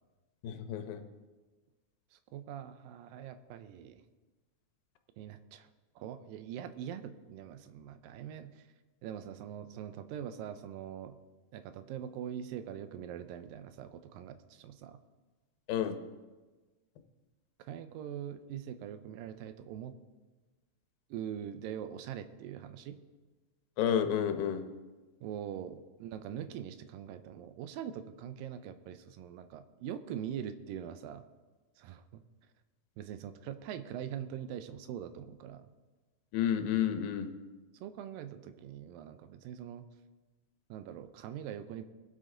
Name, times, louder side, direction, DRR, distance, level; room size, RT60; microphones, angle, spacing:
voice 1, 0.4-1.0 15.7-16.0 23.8-24.7 36.3-37.3, left 9 dB, 85° left, 7 dB, 2.7 m, -30 dB
voice 2, 2.1-4.0 5.2-5.7 6.0-8.7 9.0-11.2 11.5-15.0 17.6-20.0 21.1-23.0 25.2-31.2 31.8-32.2 33.0-35.7 37.7-39.9 40.7-41.8, right 9 dB, 80° right, 10 dB, 2.3 m, -43 dB
21.0 x 8.1 x 3.8 m, 1.3 s
omnidirectional pair, 4.1 m